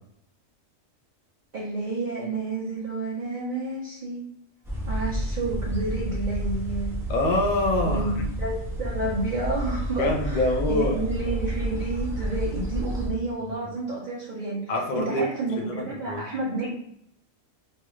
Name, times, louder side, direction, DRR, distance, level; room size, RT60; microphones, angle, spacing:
voice 1, 1.5-4.2 4.9-7.0 7.8-14.6 14.9-16.8, right 2 dB, 50° right, -5 dB, 0.5 m, -30 dB
sound 1, 4.6-13.1, equal, 5° right, 0.5 m, -30 dB
voice 2, 7.1-8.2 10.0-11.0 14.7-15.2 15.5-16.2, left 1 dB, 60° left, 2 dB, 0.5 m, -25 dB
3.1 x 2.3 x 3.0 m, 0.73 s
omnidirectional pair, 1.4 m